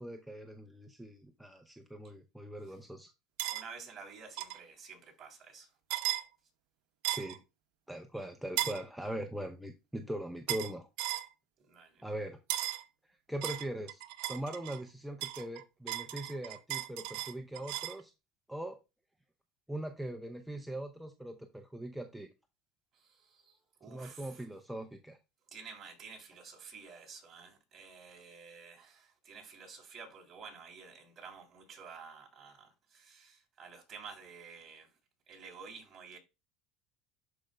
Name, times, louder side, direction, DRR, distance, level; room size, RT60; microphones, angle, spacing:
voice 1, 0.0-3.1 7.1-7.4 7.9-10.9 12.0-12.4 13.1-14.0 14.3-18.1 18.5-18.8 19.7-22.3 23.9-25.2, right 1 dB, ahead, 0.6 m, -41 dB
sound 1, 3.4-3.6 4.4-4.6 5.9-6.2 7.0-7.4 8.6-8.8 10.5-10.7 11.0-11.3 12.5-12.8 13.4-14.8 15.2-18.0, right 15 dB, 75° right, 0.7 m, -36 dB
voice 2, 3.5-5.7 11.7-12.0 23.0-24.3 25.5-34.9 35.3-36.2, right 5 dB, 35° right, 3.0 m, -51 dB
12.0 x 4.9 x 2.2 m
supercardioid pair, 120°, 0 cm